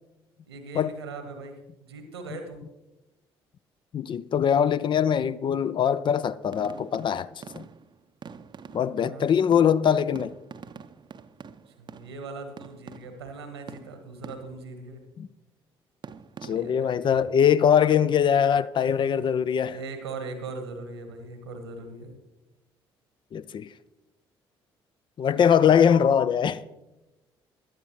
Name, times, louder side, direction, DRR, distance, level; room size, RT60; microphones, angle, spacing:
voice 1, 0.5-2.6 8.9-9.3 11.8-15.0 16.4-17.2 19.7-22.2 25.3-25.6, right 3 dB, 80° right, 1.2 m, -40 dB
voice 2, 3.9-7.7 8.7-10.3 15.2-15.3 16.4-19.8 23.3-23.7 25.2-26.6, left 8 dB, 40° left, 0.4 m, -22 dB
sound 1, 6.5-9.2 9.5-13.4 13.7-14.8 16.0-17.0, right 6 dB, 35° right, 0.6 m, -46 dB
17.0 x 11.0 x 3.1 m
figure-of-eight pair, 45°, 13 cm